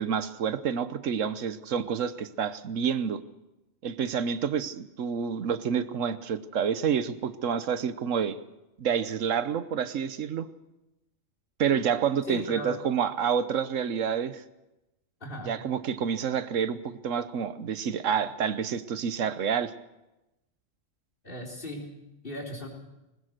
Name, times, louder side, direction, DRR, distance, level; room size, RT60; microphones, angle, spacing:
voice 1, 0.0-3.2 3.8-8.4 8.8-10.5 11.6-14.4 15.4-19.7, right 7 dB, 80° right, 13 dB, 1.3 m, -28 dB
voice 2, 12.3-12.8 15.2-15.5 21.2-21.9 22.2-22.7, left 1 dB, 45° left, 2 dB, 4.1 m, -37 dB
20.5 x 19.5 x 6.6 m, 0.97 s
omnidirectional pair, 1.3 m